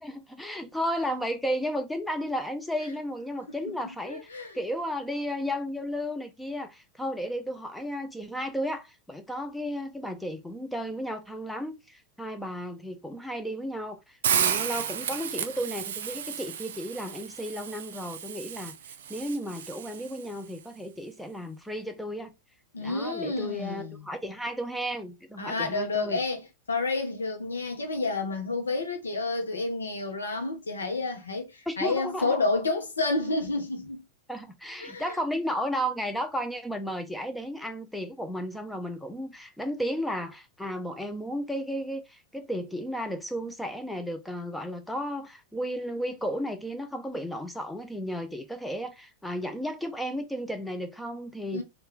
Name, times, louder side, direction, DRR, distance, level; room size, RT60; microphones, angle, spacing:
voice 1, 0.0-4.3 4.5-18.7 19.1-22.3 22.8-26.2 31.7-32.4 34.3-51.6, equal, 5° left, 0.5 m, -33 dB
voice 2, 4.0-4.6 22.7-24.1 25.4-34.0 34.8-35.2 51.5-51.6, left 3 dB, 75° left, 0.8 m, -30 dB
Hiss, 14.2-20.3, right 8 dB, 60° right, 0.4 m, -32 dB
3.2 x 2.4 x 3.5 m
figure-of-eight pair, 90°, 0 cm